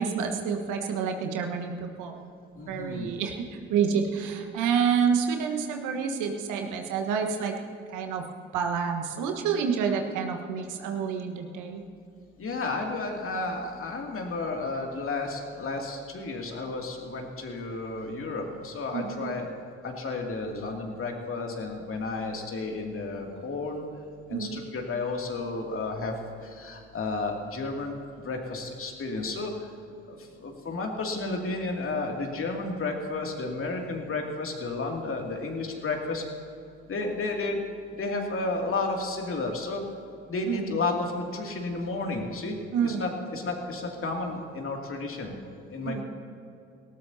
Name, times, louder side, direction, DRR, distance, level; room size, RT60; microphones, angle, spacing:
voice 1, 0.0-2.2 2.7-7.5 7.9-8.2 8.5-11.8 18.9-19.3 24.3-24.6 40.5-40.8 42.7-43.1 45.8-46.0, right 6 dB, 65° right, 3 dB, 1.5 m, -28 dB
voice 2, 2.6-3.1 12.4-19.5 19.8-23.9 24.3-26.1 26.4-29.7 30.1-36.2 36.9-37.6 37.9-39.8 40.3-42.6 42.8-45.4 45.7-46.0, left 3 dB, 40° left, 1 dB, 2.7 m, -32 dB
19.0 x 18.5 x 2.9 m, 2.6 s
hypercardioid pair, 50°, 33 cm